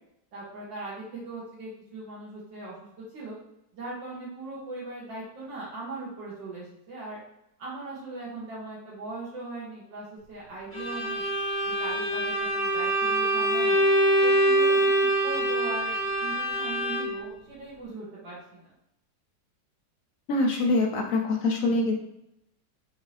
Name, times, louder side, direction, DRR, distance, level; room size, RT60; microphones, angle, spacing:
voice 1, 0.3-2.8 3.1-3.4 3.7-7.2 7.6-11.3 11.7-13.8 14.2-18.7, right 2 dB, 85° right, -7 dB, 1.9 m, -39 dB
Bowed string instrument, 10.7-17.3, right 1 dB, 10° left, 1.5 m, -24 dB
voice 2, 20.3-22.0, left 2 dB, 65° left, 1 dB, 0.8 m, -24 dB
5.3 x 2.7 x 3.2 m, 0.82 s
omnidirectional pair, 1.9 m